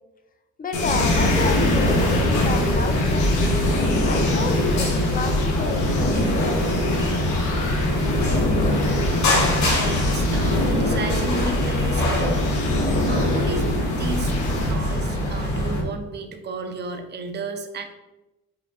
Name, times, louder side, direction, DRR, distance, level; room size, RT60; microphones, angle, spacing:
voice 1, 0.6-3.3 4.0-7.1 7.4-8.1, left 4 dB, 30° left, 6 dB, 0.5 m, -31 dB
sound 1, 0.7-14.7, left 1 dB, 85° left, 1.0 m, -24 dB
sound 2, 0.9-15.8, left 1 dB, 70° left, 1.4 m, -24 dB
voice 2, 9.7-12.5 13.1-14.3 14.6-17.8, right 3 dB, 35° right, 6 dB, 0.5 m, -33 dB
4.7 x 2.3 x 3.6 m, 1.0 s
cardioid pair, 90°, 30 cm